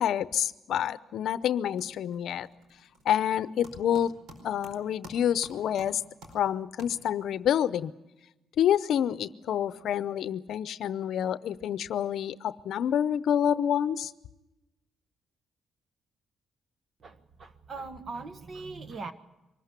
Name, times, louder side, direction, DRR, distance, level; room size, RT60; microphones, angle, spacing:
voice 1, 0.0-2.5 3.0-4.1 4.4-6.0 6.3-7.9 8.6-14.1, left 9 dB, 70° left, 15 dB, 0.7 m, -28 dB
sound 1, 0.9-1.3 1.5-7.4, right 1 dB, 85° right, 4.8 m, -52 dB
voice 2, 17.0-19.1, right 3 dB, 45° right, 10 dB, 1.5 m, -40 dB
24.0 x 14.0 x 9.8 m, 0.99 s
cardioid pair, 90°, 0 cm